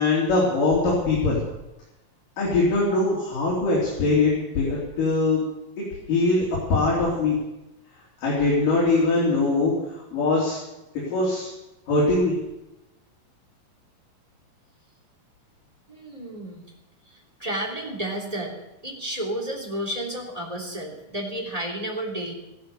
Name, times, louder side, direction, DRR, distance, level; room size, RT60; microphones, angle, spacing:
voice 1, 0.0-1.4 2.4-5.4 6.1-6.5 6.7-7.4 8.2-9.7 10.1-10.6 10.9-11.5 11.9-12.4, left 3 dB, 70° left, -6 dB, 5.5 m, -22 dB
voice 2, 15.9-16.6 17.1-18.5 18.8-22.3, right 1 dB, 10° right, 0 dB, 2.9 m, -31 dB
15.5 x 13.0 x 7.1 m, 0.97 s
omnidirectional pair, 4.0 m